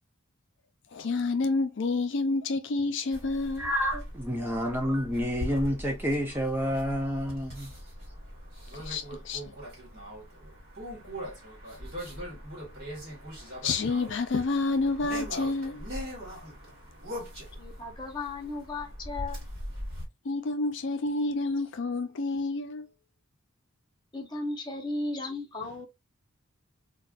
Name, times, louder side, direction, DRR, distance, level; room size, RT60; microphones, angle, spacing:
voice 1, 0.9-3.7 8.7-9.4 13.6-15.9 20.2-22.9, left 3 dB, 55° left, 0.4 m, -29 dB
sound 1, 3.1-20.0, equal, 45° right, 1.5 m, -41 dB
voice 2, 3.6-7.7, equal, 10° right, 0.4 m, -29 dB
voice 3, 17.6-19.4 24.1-25.9, left 2 dB, 20° left, 0.8 m, -35 dB
4.0 x 2.3 x 2.4 m
head